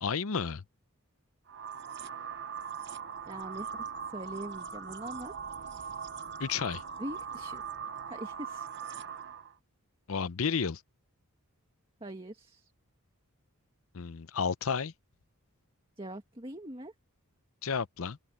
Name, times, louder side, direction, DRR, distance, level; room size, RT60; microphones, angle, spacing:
voice 1, 0.0-0.6 6.4-6.8 10.1-10.8 13.9-14.9 17.6-18.2, left 6 dB, 65° left, 0.6 m, -31 dB
sound 1, 1.5-9.5, right 6 dB, 50° right, 1.0 m, -40 dB
voice 2, 3.3-5.3 5.6-6.0 7.0-7.6 8.1-8.7 12.0-12.7 16.0-16.9, right 1 dB, 25° right, 1.9 m, -43 dB
open air
head